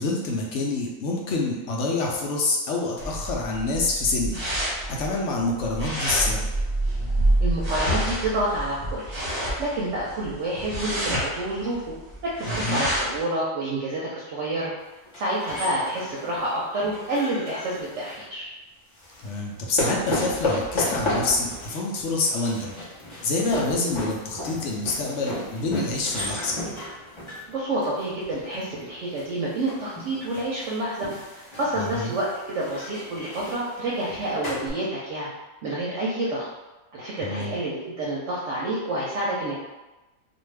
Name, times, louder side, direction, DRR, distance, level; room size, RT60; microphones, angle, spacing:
voice 1, 0.0-4.4 4.9-6.5 12.5-12.9 19.2-22.7 23.2-26.6 31.8-32.1 37.2-37.6, left 3 dB, 70° left, -1 dB, 0.8 m, -27 dB
sound 1, 3.0-13.2, right 1 dB, 35° right, 0.8 m, -27 dB
voice 2, 7.4-9.0 9.6-11.8 12.2-14.7 15.2-18.5 27.5-31.1 31.3-35.3 35.6-36.5 36.9-39.6, right 1 dB, 70° right, -6 dB, 0.8 m, -28 dB
sound 2, 15.1-18.2 19.0-34.7, left 1 dB, 30° left, 0.5 m, -34 dB
2.5 x 2.2 x 3.2 m, 1.1 s
omnidirectional pair, 1.4 m